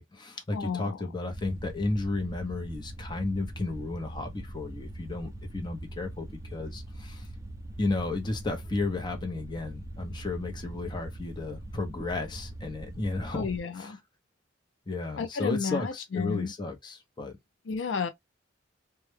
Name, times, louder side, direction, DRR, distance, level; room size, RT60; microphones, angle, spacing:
voice 1, 0.0-7.3 7.8-13.5 13.8-14.0 14.9-17.3, left 2 dB, 25° left, 0.6 m, -33 dB
voice 2, 0.5-1.0 13.3-14.0 15.2-16.5 17.7-18.1, left 5 dB, 70° left, 0.4 m, -31 dB
sound 1, 1.3-13.6, right 1 dB, 15° right, 0.3 m, -42 dB
2.2 x 2.1 x 3.1 m
head